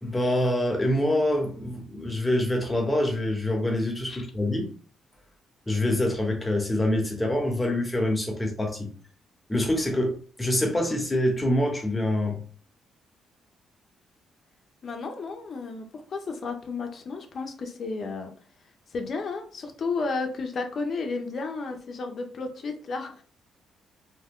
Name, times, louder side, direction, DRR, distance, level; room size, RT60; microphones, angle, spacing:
voice 1, 0.0-4.7 5.7-8.9 9.5-12.4, left 1 dB, 10° left, 1 dB, 1.1 m, -25 dB
voice 2, 14.8-18.3 18.9-23.2, left 4 dB, 50° left, 4 dB, 0.7 m, -33 dB
2.9 x 2.2 x 3.6 m, 0.42 s
cardioid pair, 90°, 0 cm